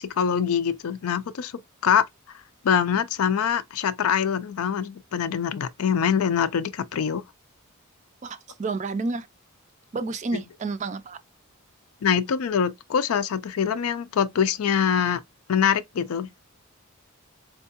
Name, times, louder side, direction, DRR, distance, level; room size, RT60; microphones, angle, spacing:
voice 1, 0.0-2.0 2.6-7.2 12.0-15.2 15.5-16.3, left 7 dB, 75° left, 0.4 m, -24 dB
voice 2, 8.2-9.3 9.9-11.2, right 3 dB, 35° right, 0.3 m, -30 dB
4.4 x 2.2 x 2.7 m
head